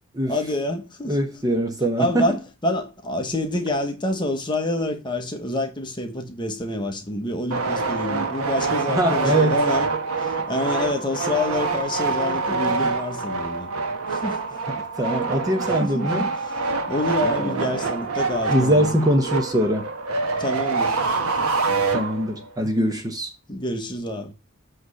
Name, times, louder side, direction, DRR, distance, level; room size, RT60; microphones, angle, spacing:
voice 1, 0.3-1.2 2.0-9.9 10.5-13.7 14.1-14.4 15.8-16.3 16.9-18.9 20.4-21.2 23.5-24.3, left 1 dB, 20° left, 1.1 m, -27 dB
voice 2, 1.1-2.4 8.9-9.6 14.7-16.3 17.2-17.9 18.5-19.9 21.9-23.3, right 1 dB, 15° right, 0.9 m, -23 dB
sound 1, 7.5-22.5, right 4 dB, 80° right, 1.1 m, -25 dB
7.8 x 3.3 x 6.2 m
head